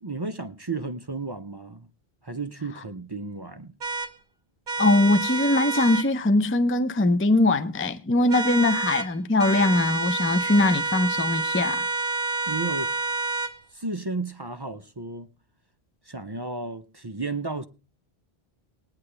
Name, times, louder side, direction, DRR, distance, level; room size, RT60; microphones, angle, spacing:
voice 1, 0.0-1.9 2.2-3.8 12.5-13.0 13.7-15.3 16.0-17.7, right 3 dB, 30° right, 0.6 m, -33 dB
sound 1, 3.8-4.1 4.7-6.1 8.3-9.1 9.4-13.5, right 3 dB, 50° right, 1.2 m, -28 dB
voice 2, 4.8-11.8, left 2 dB, 15° left, 0.5 m, -21 dB
20.0 x 9.7 x 3.3 m
omnidirectional pair, 1.0 m